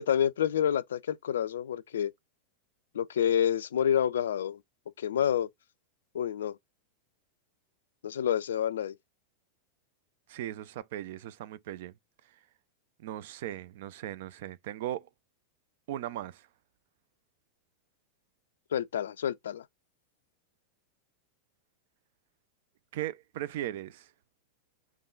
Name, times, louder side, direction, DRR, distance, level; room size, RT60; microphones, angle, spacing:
voice 1, 0.0-2.1 2.9-4.6 5.0-5.5 6.1-6.6 8.0-8.9 18.7-19.6, left 9 dB, 65° left, 0.3 m, -28 dB
voice 2, 10.3-11.9 13.0-15.1 15.9-16.4 22.9-24.1, right 13 dB, 55° right, 0.4 m, -38 dB
3.6 x 3.2 x 3.6 m
figure-of-eight pair, 90°, 0 cm